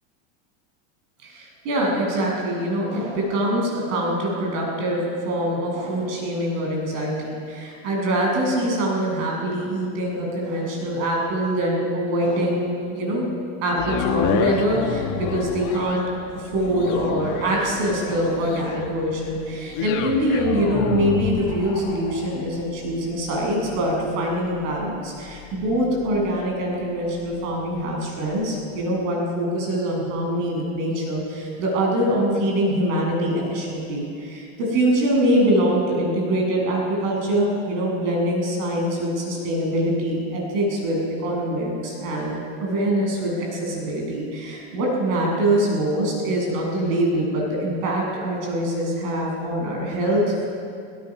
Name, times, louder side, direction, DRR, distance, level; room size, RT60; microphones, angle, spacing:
voice 1, 1.2-13.3 13.6-16.0 16.5-42.3 42.6-50.5, right 1 dB, 60° right, -1 dB, 7.7 m, -24 dB
sound 1, 13.7-27.9 28.4-28.5, left 8 dB, 45° left, 1.9 m, -31 dB
25.0 x 18.0 x 6.3 m, 2.3 s
supercardioid pair, 150°, 42 cm